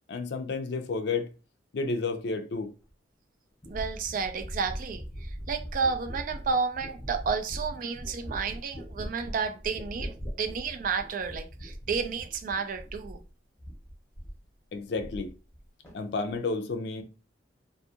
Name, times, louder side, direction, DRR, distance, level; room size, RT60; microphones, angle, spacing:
voice 1, 0.1-1.3 1.7-2.7 14.7-15.3 15.9-17.0, left 4 dB, 60° left, 0.4 m, -31 dB
sound 1, 2.9-3.0 3.6-13.3 13.6-14.5 14.7-15.6 15.8-16.4, equal, 15° left, 0.8 m, -40 dB
voice 2, 3.7-5.0 5.5-13.2, right 5 dB, 45° right, 0.3 m, -31 dB
2.6 x 2.3 x 2.7 m
head